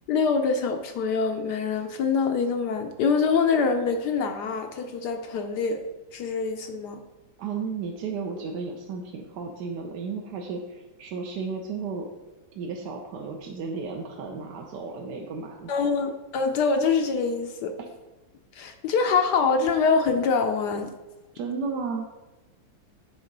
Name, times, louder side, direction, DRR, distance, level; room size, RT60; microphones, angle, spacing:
voice 1, 0.1-5.8 6.1-7.0 15.7-17.8 18.5-20.9, left 5 dB, 70° left, 6 dB, 1.0 m, -25 dB
voice 2, 7.4-12.1 12.6-15.7 21.3-22.1, right 5 dB, 65° right, 0 dB, 1.2 m, -33 dB
8.8 x 3.7 x 5.2 m, 1.1 s
omnidirectional pair, 2.1 m